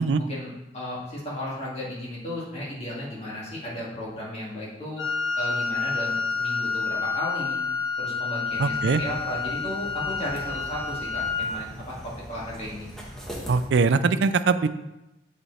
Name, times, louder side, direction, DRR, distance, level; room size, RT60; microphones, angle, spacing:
voice 1, 0.2-5.0 5.4-7.6 8.0-12.9, left 1 dB, 35° left, -6 dB, 2.5 m, -34 dB
Wind instrument woodwind instrument, 5.0-11.6, left 4 dB, 65° left, 1.7 m, -29 dB
sound 1, 8.5-13.7, equal, 5° left, 1.3 m, -41 dB
voice 2, 8.6-9.0 13.5-14.7, right 4 dB, 65° right, 12 dB, 0.4 m, -21 dB
7.7 x 5.1 x 4.2 m, 0.96 s
head